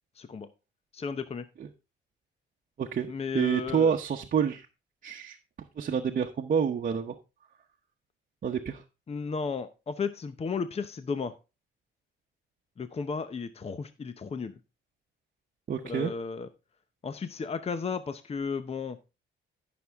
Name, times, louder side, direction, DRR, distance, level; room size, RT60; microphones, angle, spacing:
voice 1, 0.2-0.5 0.9-1.5 3.1-4.0 9.1-11.3 12.8-14.5 15.8-16.5 17.0-19.0, left 5 dB, 30° left, 11 dB, 0.8 m, -34 dB
voice 2, 2.8-4.7 5.0-5.4 5.8-7.2 8.4-8.8 15.7-16.1, right 7 dB, 45° right, 1 dB, 1.0 m, -28 dB
13.5 x 6.1 x 3.5 m, 0.29 s
cardioid pair, 90°, 20 cm